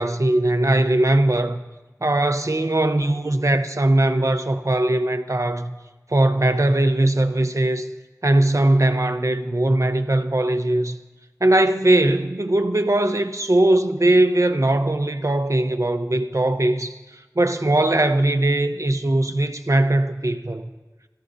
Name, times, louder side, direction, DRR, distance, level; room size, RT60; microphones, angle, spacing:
voice 1, 0.0-1.6 2.0-5.7 6.1-7.9 8.2-10.9 11.4-20.7, right 1 dB, 55° right, 8 dB, 0.9 m, -20 dB
27.5 x 14.0 x 2.7 m, 1.2 s
wide cardioid pair, 40°, 6 cm